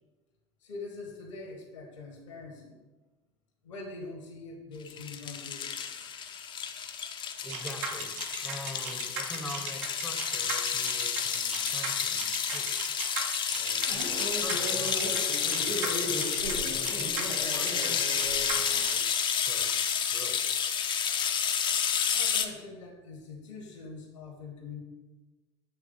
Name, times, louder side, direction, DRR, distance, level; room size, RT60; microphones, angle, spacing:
voice 1, 0.6-2.8 3.6-5.7 22.1-24.8, left 3 dB, 75° left, 2 dB, 1.4 m, -43 dB
sound 1, 4.9-22.5, left 7 dB, 30° left, 0.6 m, -30 dB
voice 2, 7.4-8.2 8.4-12.7 13.5-20.7, equal, ahead, 4 dB, 0.8 m, -45 dB
sound 2, 7.5-19.0, right 5 dB, 60° right, 1.0 m, -37 dB
sound 3, 13.9-18.8, equal, 90° right, 1.4 m, -37 dB
8.5 x 3.2 x 3.8 m, 1.2 s
figure-of-eight pair, 70°, 16 cm